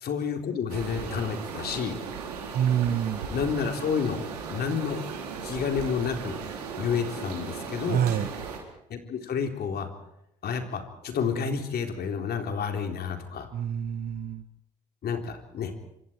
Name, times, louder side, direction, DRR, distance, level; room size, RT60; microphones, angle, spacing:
voice 1, 0.0-2.0 3.3-4.2 4.5-5.0 5.4-6.4 6.8-8.0 8.9-9.9 10.4-13.5 15.0-15.7, left 6 dB, 55° left, 5 dB, 4.0 m, -30 dB
sound 1, 0.7-8.6, right 6 dB, 90° right, 4.3 m, -37 dB
voice 2, 2.5-3.2 7.9-8.3 13.5-14.4, right 9 dB, 50° right, 10 dB, 1.2 m, -26 dB
27.5 x 25.5 x 4.7 m, 0.80 s
hypercardioid pair, 55°, 19 cm